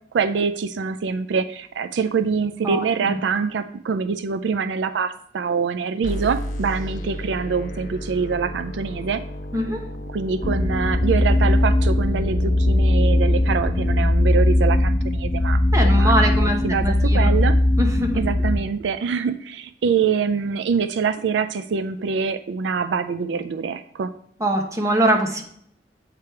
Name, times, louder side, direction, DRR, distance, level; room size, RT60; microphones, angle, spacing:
voice 1, 0.1-9.2 10.1-17.6 18.2-24.1, right 5 dB, 80° right, 10 dB, 0.4 m, -25 dB
sound 1, 6.0-14.0, equal, 45° left, 0.9 m, -34 dB
voice 2, 9.5-9.8 15.7-17.3 17.8-18.1 24.4-25.4, right 1 dB, 20° right, 2 dB, 1.0 m, -22 dB
sound 2, 10.4-18.5, left 1 dB, 10° left, 1.3 m, -19 dB
8.2 x 3.4 x 4.5 m, 0.65 s
head